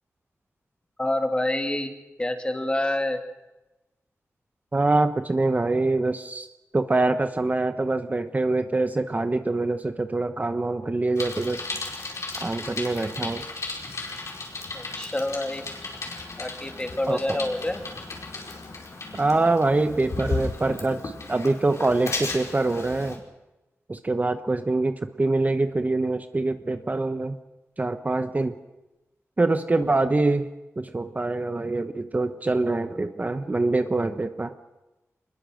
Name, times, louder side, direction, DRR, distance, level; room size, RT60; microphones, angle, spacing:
voice 1, 1.0-1.9 2.2-3.2 14.7-15.7 16.4-17.8, left 1 dB, 20° left, 5 dB, 2.7 m, -27 dB
voice 2, 4.7-6.5 6.7-11.7 12.4-13.4 17.1-17.2 19.1-23.2 23.9-27.4 27.8-28.5 29.4-30.5 30.8-34.5, right 2 dB, 30° right, 9 dB, 1.1 m, -24 dB
Bicycle, 11.2-23.2, left 3 dB, 65° left, 4.9 m, -35 dB
25.0 x 21.0 x 6.5 m, 1.0 s
wide cardioid pair, 90°, 5 cm